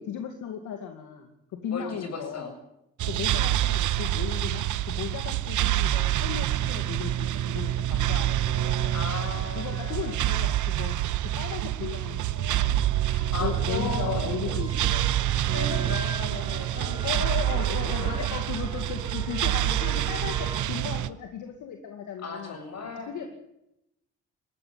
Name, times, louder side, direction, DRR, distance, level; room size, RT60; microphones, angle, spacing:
voice 1, 0.0-2.5 3.1-9.0 9.5-11.0 11.2-12.8 13.2-15.6 17.0-22.6 22.9-23.4, left 8 dB, 80° left, 4 dB, 2.5 m, -36 dB
voice 2, 1.7-2.5 8.9-10.2 13.0-14.8 15.5-17.1 17.5-18.3 22.2-23.1, left 4 dB, 60° left, 5 dB, 7.4 m, -37 dB
sound 1, 3.0-21.1, right 13 dB, 75° right, 0.9 m, -27 dB
sound 2, 13.3-20.6, right 1 dB, 15° right, 3.4 m, -42 dB
20.5 x 15.0 x 9.8 m, 0.84 s
cardioid pair, 90°, 30 cm